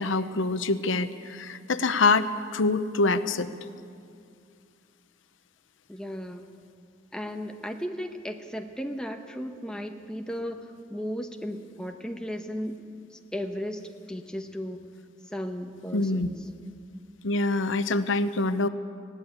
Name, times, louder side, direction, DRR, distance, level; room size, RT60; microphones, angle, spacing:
voice 1, 0.0-3.5 15.9-16.3 17.2-18.7, left 3 dB, 90° left, 12 dB, 0.8 m, -25 dB
voice 2, 5.9-6.5 7.1-10.6 10.9-12.8 13.1-14.8 15.3-16.3, equal, 5° left, 4 dB, 1.0 m, -35 dB
20.0 x 16.5 x 8.5 m, 2.3 s
head